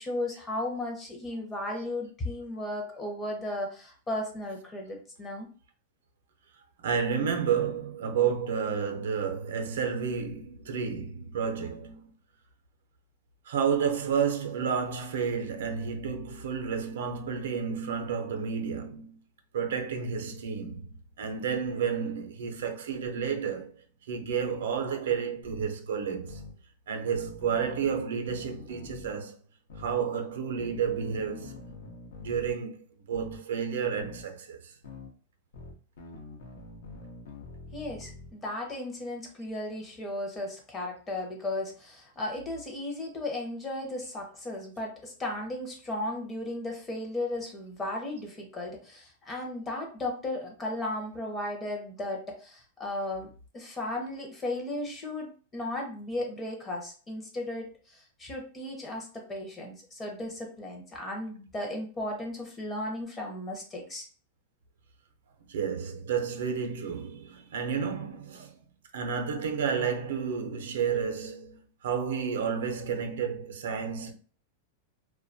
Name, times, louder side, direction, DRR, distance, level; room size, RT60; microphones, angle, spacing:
voice 1, 0.0-5.5 37.7-64.1, left 1 dB, 15° left, 0.5 m, -35 dB
voice 2, 6.8-12.1 13.5-19.2 19.5-23.7 24.1-26.4 26.9-29.3 29.8-31.6 32.2-34.7 65.5-68.6 68.9-74.1, right 6 dB, 80° right, 0.5 m, -31 dB
sound 1, 25.4-25.7 26.3-26.5 27.1-29.1 29.7-30.0 30.6-32.5 33.1-33.4 34.0-34.2 34.8-35.1 35.5-38.3, left 2 dB, 80° left, 0.6 m, -45 dB
2.2 x 2.1 x 2.6 m
supercardioid pair, 160°, 0 cm